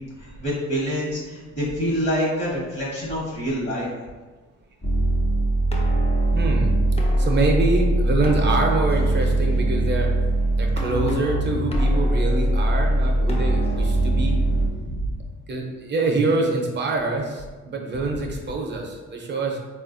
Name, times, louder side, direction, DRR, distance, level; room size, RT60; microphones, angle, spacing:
voice 1, 0.2-3.9 13.9-14.2 14.5-15.2, equal, 40° left, -6 dB, 1.2 m, -27 dB
sound 1, 4.8-14.7, right 1 dB, 20° left, 0.5 m, -21 dB
voice 2, 6.3-6.7 7.2-10.1 10.6-14.4 15.5-19.6, right 3 dB, 35° right, 1 dB, 0.6 m, -25 dB
3.8 x 2.4 x 2.5 m, 1.3 s
cardioid pair, 90°, 30 cm